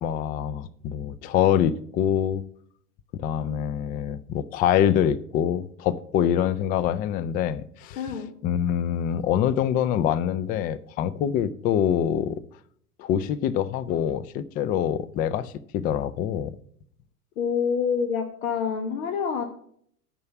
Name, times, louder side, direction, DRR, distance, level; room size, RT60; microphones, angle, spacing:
voice 1, 0.0-2.4 3.1-8.0 8.4-12.4 13.0-16.5, left 9 dB, 20° left, 0.3 m, -25 dB
voice 2, 8.0-8.3 17.4-19.4, left 6 dB, 65° left, 1.3 m, -27 dB
9.4 x 6.0 x 6.9 m
figure-of-eight pair, 85°, 45 cm